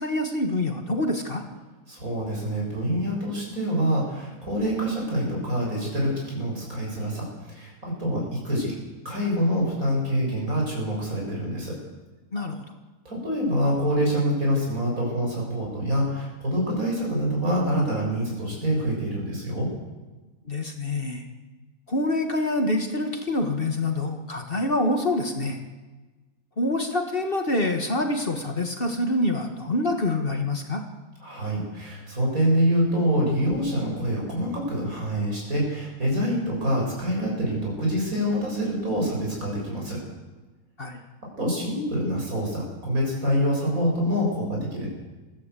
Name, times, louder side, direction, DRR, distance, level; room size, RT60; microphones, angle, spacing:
voice 1, 0.0-1.4 12.3-12.6 20.5-21.2 21.9-25.6 26.6-30.8 40.8-41.0, left 2 dB, 40° left, 4 dB, 1.8 m, -26 dB
voice 2, 1.9-8.7 9.0-11.7 13.1-19.7 31.2-40.0 41.4-44.9, equal, 65° right, -2 dB, 7.4 m, -26 dB
21.0 x 15.0 x 8.2 m, 1.2 s
omnidirectional pair, 1.6 m